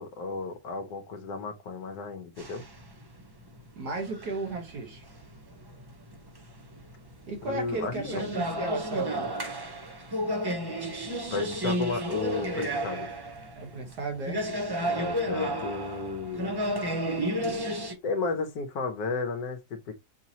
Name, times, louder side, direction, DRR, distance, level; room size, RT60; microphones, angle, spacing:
voice 1, 0.0-2.6 7.4-8.3 11.3-13.1 14.9-16.6 18.0-19.9, left 4 dB, 75° left, 1.3 m, -33 dB
sound 1, 2.4-17.9, equal, 40° right, 0.3 m, -32 dB
voice 2, 3.8-5.1 7.3-9.3 13.6-14.4, right 3 dB, 75° right, 1.9 m, -35 dB
5.5 x 2.9 x 2.8 m
omnidirectional pair, 1.7 m